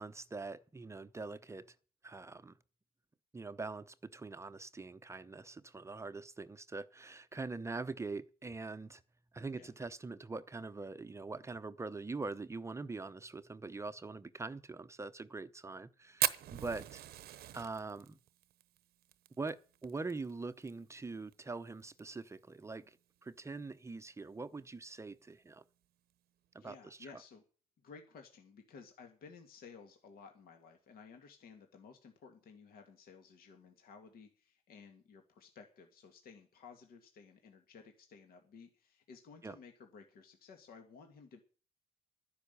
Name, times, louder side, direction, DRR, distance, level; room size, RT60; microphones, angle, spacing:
voice 1, 0.0-1.6 2.0-2.5 3.3-9.0 9.3-17.0 17.5-18.2 19.4-23.0 23.2-25.6 26.5-27.0 39.4-39.6, right 3 dB, 15° right, 0.7 m, -43 dB
Fire, 16.2-20.7 21.0-21.1 21.3-21.4 21.8-22.2 22.7-22.8 23.9-24.0, right 13 dB, 70° right, 0.9 m, -38 dB
voice 2, 26.5-27.4 27.8-41.4, left 5 dB, 60° left, 2.2 m, -56 dB
12.0 x 10.0 x 6.9 m
cardioid pair, 110°, 17 cm